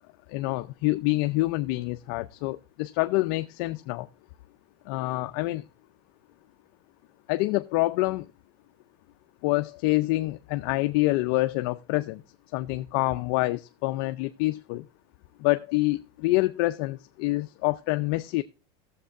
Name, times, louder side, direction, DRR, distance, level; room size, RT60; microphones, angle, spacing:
voice 1, 0.3-4.1 4.9-5.6 7.3-8.3 9.4-12.2 12.5-14.8 15.4-18.4, left 20 dB, 55° left, 0.5 m, -26 dB
18.0 x 7.3 x 2.5 m
supercardioid pair, 150°, 13 cm